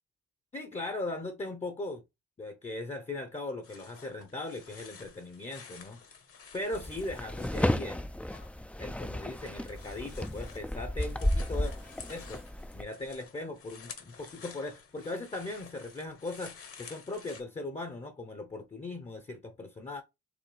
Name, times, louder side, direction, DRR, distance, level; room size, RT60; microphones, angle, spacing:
voice 1, 0.5-2.0 2.4-6.0 6.5-8.1 8.8-11.7 12.1-12.4 12.7-20.0, left 2 dB, 20° left, 0.8 m, -39 dB
sound 1, 3.6-8.5 8.8-17.4, left 6 dB, 50° left, 1.3 m, -51 dB
sound 2, 6.7-12.8, left 1 dB, 5° left, 0.4 m, -33 dB
5.0 x 3.2 x 3.4 m
cardioid pair, 90°, 30 cm